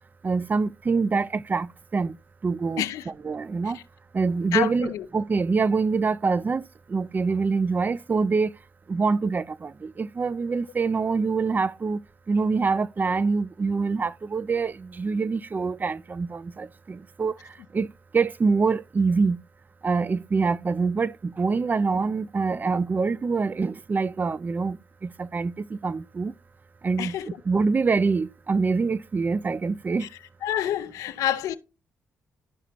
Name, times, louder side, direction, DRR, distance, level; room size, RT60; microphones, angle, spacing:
voice 1, 0.2-1.7 1.9-2.2 2.4-3.8 4.1-6.6 6.9-8.5 8.9-12.0 12.3-17.3 17.7-17.9 18.1-19.4 19.8-24.8 25.0-26.3 26.8-27.1 27.5-30.1, right 4 dB, 35° right, 0.4 m, -25 dB
voice 2, 4.5-5.0 27.0-27.3 30.4-31.6, left 11 dB, 85° left, 0.5 m, -27 dB
12.5 x 4.9 x 2.8 m
supercardioid pair, 65°, 6 cm